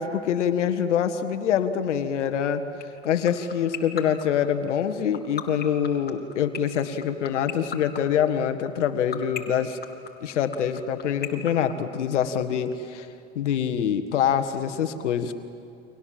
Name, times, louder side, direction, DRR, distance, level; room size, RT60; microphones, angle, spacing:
voice 1, 0.0-2.6 3.0-9.8 10.2-13.1 13.3-15.4, left 8 dB, 75° left, 8 dB, 1.7 m, -25 dB
sound 1, 2.8-12.4, left 9 dB, 25° left, 2.9 m, -32 dB
30.0 x 24.5 x 7.7 m, 2.5 s
hypercardioid pair, 90°, 36 cm